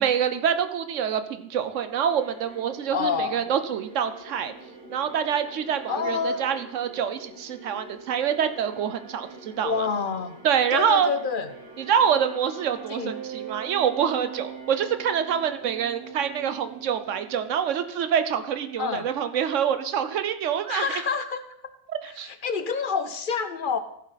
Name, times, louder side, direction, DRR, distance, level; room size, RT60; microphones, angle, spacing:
voice 1, 0.0-4.5 4.9-9.9 10.4-11.1 11.8-20.9 21.9-22.3, right 8 dB, 90° right, 11 dB, 1.1 m, -26 dB
sound 1, 1.5-17.8, right 5 dB, 50° right, 2.0 m, -43 dB
voice 2, 2.9-3.4 5.9-6.4 9.6-10.4 10.7-11.5 12.9-13.1 18.8-19.1 20.7-21.4 22.1-23.8, left 5 dB, 55° left, 11 dB, 0.7 m, -28 dB
14.0 x 7.5 x 4.1 m, 0.75 s
omnidirectional pair, 1.2 m